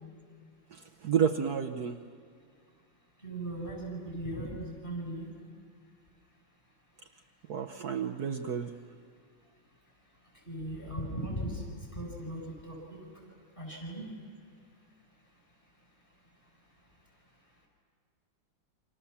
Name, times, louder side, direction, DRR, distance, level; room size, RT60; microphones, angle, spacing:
voice 1, 0.7-2.0 7.5-8.7, right 7 dB, 60° right, 5 dB, 1.3 m, -30 dB
voice 2, 3.2-5.3 10.3-13.0 13.6-14.1, right 1 dB, 25° left, -1 dB, 8.1 m, -38 dB
29.5 x 26.5 x 7.2 m, 2.1 s
omnidirectional pair, 2.0 m